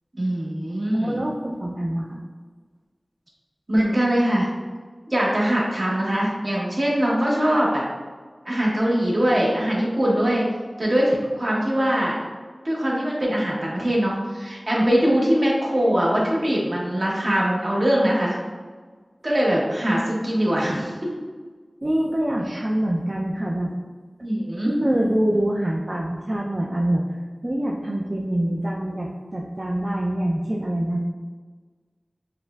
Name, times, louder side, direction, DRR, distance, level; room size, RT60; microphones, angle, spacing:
voice 1, 0.1-1.3 3.7-4.5 5.1-7.8 8.4-10.5 10.8-12.2 12.6-18.4 19.2-21.1 22.5-22.6 24.2-24.8, equal, 60° right, -4 dB, 1.0 m, -22 dB
voice 2, 0.9-2.2 21.8-23.7 24.6-27.0 27.4-31.1, right 1 dB, 40° right, -2 dB, 0.4 m, -25 dB
5.6 x 2.1 x 2.3 m, 1.4 s
wide cardioid pair, 40°, 0 cm